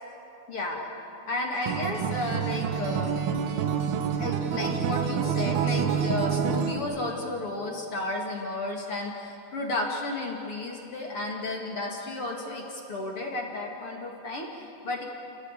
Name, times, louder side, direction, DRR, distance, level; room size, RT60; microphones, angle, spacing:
voice 1, 0.5-0.9 1.3-3.3 4.2-15.0, left 2 dB, 40° left, 0 dB, 2.5 m, -33 dB
Acoustic guitar, 1.7-6.8, right 7 dB, 75° right, 3.1 m, -27 dB
30.0 x 18.5 x 8.3 m, 2.8 s
omnidirectional pair, 4.8 m